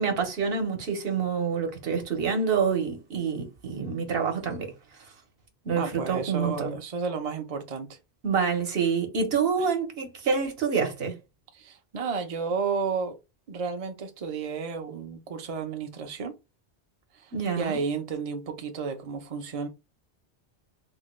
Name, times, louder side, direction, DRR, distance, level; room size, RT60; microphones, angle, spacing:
voice 1, 0.0-4.7 5.6-6.8 8.2-11.2 17.3-17.8, right 6 dB, 65° right, 1.1 m, -27 dB
voice 2, 5.7-8.0 11.5-13.2 13.5-16.3 17.1-19.7, right 5 dB, 45° right, 0.5 m, -32 dB
3.5 x 2.2 x 3.0 m
omnidirectional pair, 1.1 m